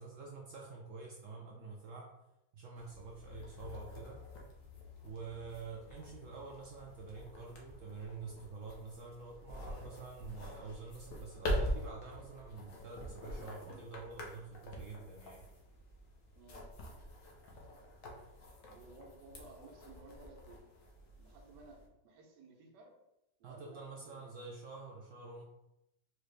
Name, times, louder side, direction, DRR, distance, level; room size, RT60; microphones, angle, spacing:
voice 1, 0.0-2.1 2.5-4.2 5.0-15.5 23.4-25.4, right 4 dB, 70° right, -1 dB, 0.7 m, -48 dB
sound 1, 2.8-21.9, equal, 60° left, 1.0 m, -45 dB
sound 2, 11.6-11.9 13.0-13.2 14.7-14.9 16.7-17.0, equal, 85° left, 1.4 m, -50 dB
voice 2, 18.7-20.6 21.2-22.9 23.4-24.4, right 3 dB, 90° right, 1 dB, 1.4 m, -57 dB
4.5 x 2.4 x 3.2 m, 0.87 s
omnidirectional pair, 1.8 m